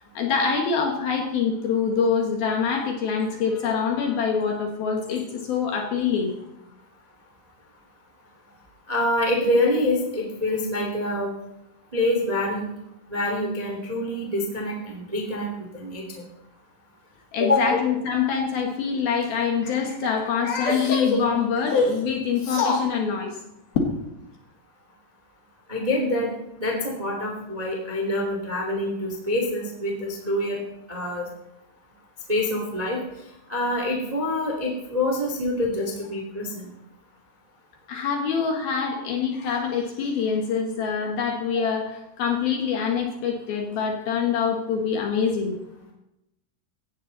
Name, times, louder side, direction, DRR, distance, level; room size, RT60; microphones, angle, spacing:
voice 1, 0.1-6.3 17.3-23.3 23.8-24.0 37.9-41.9 42.2-45.6, left 6 dB, 60° left, 2 dB, 2.9 m, -24 dB
voice 2, 8.9-11.3 11.9-12.7 13.1-16.2 17.4-17.8 25.7-26.3 26.6-30.0 30.2-30.6 30.9-31.2 32.3-33.0 33.5-36.7, left 1 dB, 20° right, 0 dB, 1.2 m, -26 dB
17.0 x 14.0 x 4.0 m, 0.86 s
omnidirectional pair, 5.6 m